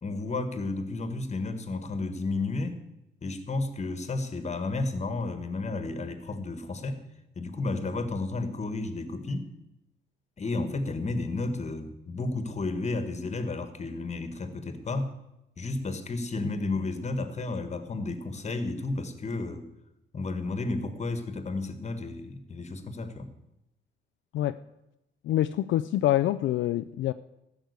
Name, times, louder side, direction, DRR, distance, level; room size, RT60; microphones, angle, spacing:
voice 1, 0.0-2.8 3.2-7.0 7.3-9.5 10.4-15.1 15.6-19.6 20.1-23.3, left 3 dB, 35° left, 10 dB, 1.6 m, -32 dB
voice 2, 25.2-27.1, left 13 dB, 75° left, 11 dB, 0.4 m, -26 dB
13.0 x 6.0 x 8.2 m, 0.90 s
cardioid pair, 90°, 20 cm